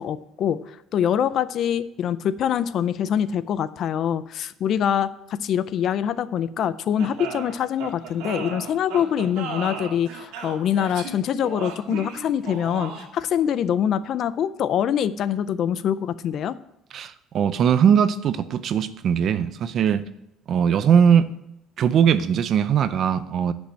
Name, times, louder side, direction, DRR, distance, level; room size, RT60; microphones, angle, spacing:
voice 1, 0.0-16.5, left 9 dB, 45° left, 16 dB, 0.4 m, -24 dB
sound 1, 7.0-13.3, right 6 dB, 80° right, 2.0 m, -35 dB
voice 2, 16.9-20.0 20.5-21.3 21.8-23.5, right 8 dB, 45° right, 14 dB, 0.5 m, -20 dB
10.0 x 5.3 x 7.5 m, 0.82 s
cardioid pair, 155°, 0 cm